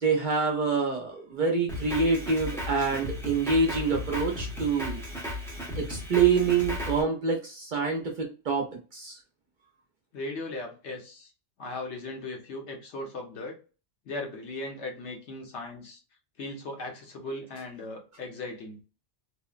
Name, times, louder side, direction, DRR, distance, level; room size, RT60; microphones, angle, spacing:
voice 1, 0.0-5.0 5.8-8.7 8.9-9.2, right 4 dB, 50° right, 1 dB, 0.6 m, -26 dB
Drum kit, 1.7-7.0, left 1 dB, 5° left, 0.6 m, -35 dB
voice 2, 10.1-11.3 11.6-13.6 14.0-16.0 16.4-18.8, left 2 dB, 70° left, 1 dB, 1.1 m, -38 dB
3.0 x 2.0 x 2.3 m, 0.34 s
omnidirectional pair, 1.2 m